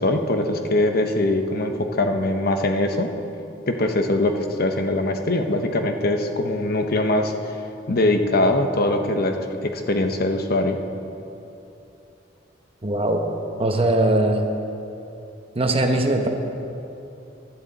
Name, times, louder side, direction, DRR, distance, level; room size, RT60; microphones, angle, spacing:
voice 1, 0.0-3.1 3.7-7.3 7.9-9.4 9.6-10.8, left 2 dB, 55° left, 5 dB, 0.9 m, -22 dB
voice 2, 12.8-13.3 13.6-14.5 15.5-16.3, right 1 dB, 30° right, 4 dB, 1.0 m, -20 dB
16.0 x 11.5 x 4.1 m, 2.8 s
head